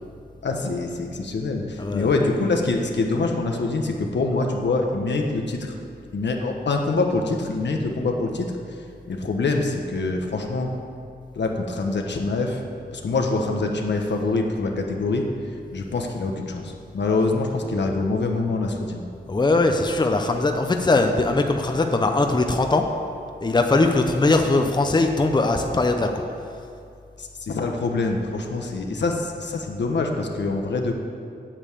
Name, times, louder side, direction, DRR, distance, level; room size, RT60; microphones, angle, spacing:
voice 1, 0.4-5.7 6.1-8.5 9.1-10.7 11.3-12.6 12.9-15.2 15.7-19.0 27.2-30.9, left 3 dB, 75° left, 2 dB, 1.2 m, -25 dB
voice 2, 1.8-2.1 19.3-22.8 23.4-26.2, left 2 dB, 25° left, 4 dB, 0.7 m, -20 dB
8.9 x 7.1 x 8.4 m, 2.4 s
wide cardioid pair, 120°, 18 cm